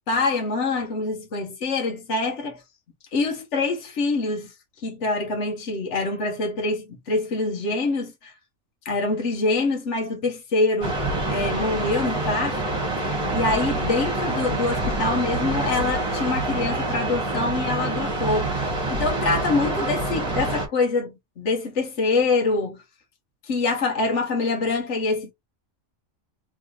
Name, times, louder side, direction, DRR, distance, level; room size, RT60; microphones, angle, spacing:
voice 1, 0.1-2.6 3.1-4.5 4.8-8.3 8.8-11.0 11.3-12.8 13.3-22.8 23.5-25.3, left 3 dB, 65° left, 1.5 m, -25 dB
sound 1, 10.8-20.7, right 2 dB, 25° right, 1.5 m, -26 dB
3.6 x 3.3 x 2.5 m
omnidirectional pair, 1.4 m